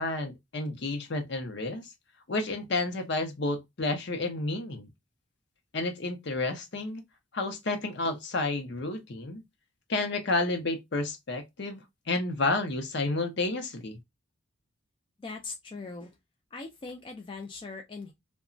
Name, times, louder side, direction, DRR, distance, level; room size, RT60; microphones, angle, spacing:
voice 1, 0.0-1.9 2.3-4.9 5.7-7.0 7.3-9.4 9.9-14.0, left 2 dB, 55° left, 0.7 m, -31 dB
voice 2, 15.2-16.2 16.5-18.1, left 3 dB, 25° left, 0.3 m, -40 dB
2.8 x 2.2 x 2.5 m
head